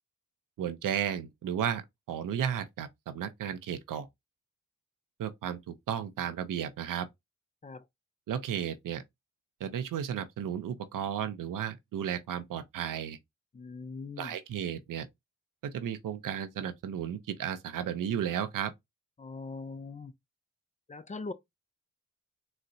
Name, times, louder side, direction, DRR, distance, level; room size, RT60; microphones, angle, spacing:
voice 1, 0.6-1.8 2.1-4.1 5.2-7.1 8.3-9.0 9.6-13.2 14.2-15.1 15.6-18.7, right 9 dB, 90° right, 0.5 m, -34 dB
voice 2, 13.5-14.3 19.2-20.1 20.9-21.3, left 3 dB, 25° left, 0.4 m, -41 dB
3.9 x 2.1 x 2.6 m
cardioid pair, 55°, 31 cm